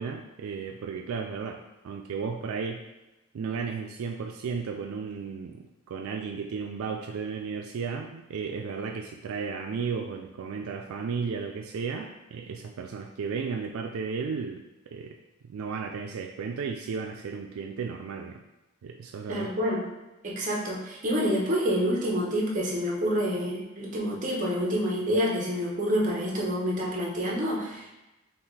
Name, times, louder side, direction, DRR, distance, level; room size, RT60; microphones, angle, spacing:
voice 1, 0.0-2.8 3.3-15.2 15.5-18.4 18.8-19.5, right 5 dB, 85° right, 3 dB, 0.3 m, -34 dB
voice 2, 19.3-19.8 20.2-27.9, equal, 35° right, -3 dB, 1.0 m, -27 dB
5.7 x 2.4 x 3.3 m, 0.99 s
head